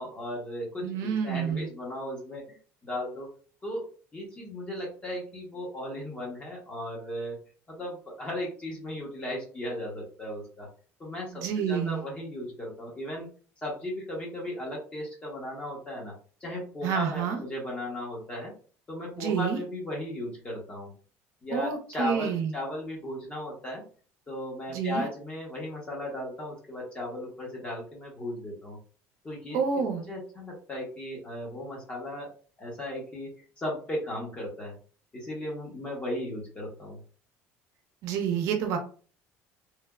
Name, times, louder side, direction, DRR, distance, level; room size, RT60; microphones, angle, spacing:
voice 1, 0.0-2.6 2.8-3.3 3.6-3.8 4.1-7.4 7.7-10.7 11.0-13.3 13.6-16.1 16.4-18.5 18.9-20.9 21.4-23.8 24.3-28.8 29.2-32.3 32.6-34.7 35.1-37.0, left 1 dB, 20° left, -3 dB, 0.9 m, -36 dB
voice 2, 0.8-1.7 11.3-12.0 16.8-17.4 19.2-19.6 21.5-22.5 24.7-25.1 29.5-30.0 38.0-38.8, right 7 dB, 70° right, 4 dB, 0.7 m, -28 dB
3.2 x 2.0 x 2.3 m, 0.40 s
cardioid pair, 135°, 6 cm